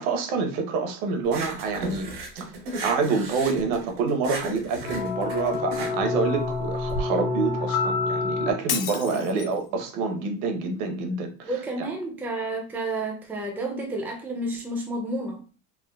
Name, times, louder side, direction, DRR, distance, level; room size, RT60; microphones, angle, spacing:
voice 1, 0.0-2.5 2.8-11.5, right 4 dB, 70° right, 4 dB, 0.9 m, -27 dB
sound 1, 1.2-7.0, right 2 dB, 85° right, 1.2 m, -35 dB
sound 2, 4.8-8.5, left 3 dB, 75° left, 1.1 m, -28 dB
Shatter, 8.7-9.7, left 10 dB, 45° left, 0.5 m, -31 dB
voice 2, 9.1-9.5 11.4-15.4, right 2 dB, 5° right, 2 dB, 0.4 m, -31 dB
3.6 x 2.1 x 2.3 m, 0.37 s
supercardioid pair, 110°, 44 cm